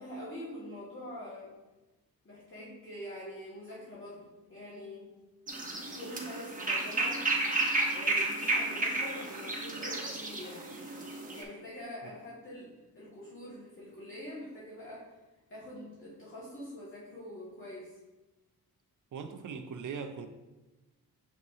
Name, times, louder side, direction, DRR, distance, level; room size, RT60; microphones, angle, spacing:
voice 1, 0.0-1.5 2.2-5.1 5.9-7.2 7.9-10.6 11.3-12.7 12.9-15.1 15.5-17.9, left 1 dB, 35° left, 2.0 m, -45 dB
sound 1, 5.5-11.4, right 2 dB, 20° right, 1.0 m, -32 dB
voice 2, 19.1-20.3, right 6 dB, 55° right, 0.6 m, -40 dB
7.4 x 4.6 x 2.8 m
cardioid pair, 100°, 37 cm